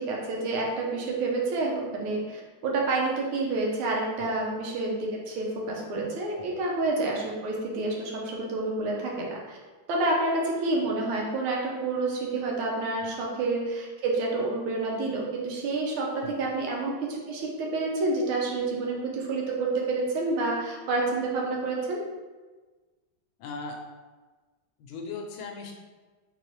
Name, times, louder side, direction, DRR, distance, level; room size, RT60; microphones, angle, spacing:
voice 1, 0.0-9.6 9.9-22.0, right 2 dB, 85° right, -2 dB, 1.6 m, -29 dB
voice 2, 23.4-23.8 24.8-25.7, left 4 dB, 80° left, 1 dB, 1.3 m, -38 dB
4.0 x 2.9 x 3.0 m, 1.3 s
omnidirectional pair, 2.3 m